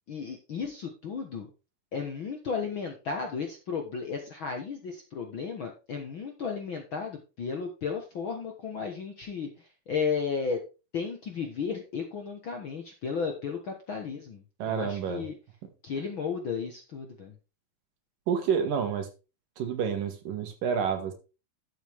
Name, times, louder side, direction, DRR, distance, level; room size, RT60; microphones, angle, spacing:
voice 1, 0.1-1.5 1.9-10.6 10.9-15.3 15.8-17.3, left 5 dB, 55° left, 3 dB, 1.4 m, -34 dB
voice 2, 14.6-15.3 18.3-19.1 19.6-21.1, right 7 dB, 75° right, 6 dB, 3.4 m, -29 dB
11.5 x 7.8 x 3.5 m, 0.30 s
omnidirectional pair, 3.9 m